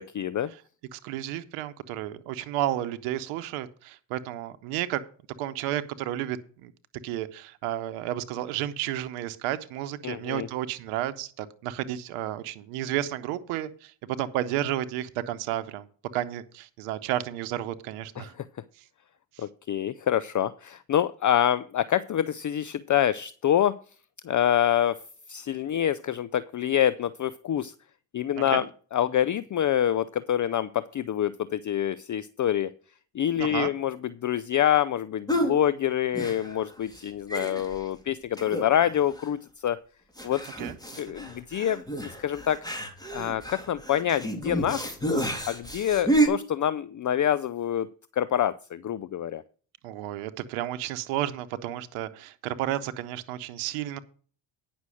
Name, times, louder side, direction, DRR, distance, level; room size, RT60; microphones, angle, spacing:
voice 1, 0.2-0.5 10.0-10.5 18.2-18.3 19.4-23.8 24.2-25.0 25.3-27.7 28.1-28.7 28.9-32.7 33.1-39.8 40.2-40.5 41.0-42.6 43.1-47.9 48.1-49.4, left 10 dB, 40° left, 17 dB, 0.6 m, -26 dB
voice 2, 0.9-5.0 5.4-6.7 7.0-15.9 16.1-18.3 19.4-19.5 28.4-28.7 33.4-33.7 40.6-40.7 41.1-41.2 49.8-54.0, right 13 dB, 90° right, 12 dB, 0.9 m, -32 dB
sound 1, 35.3-35.6 36.1-36.7 36.9-37.0 37.3-37.9 38.4-38.9 39.2-39.3 40.2-46.3, right 1 dB, 10° left, 3.1 m, -29 dB
9.7 x 6.2 x 6.2 m, 0.41 s
supercardioid pair, 60°, 50 cm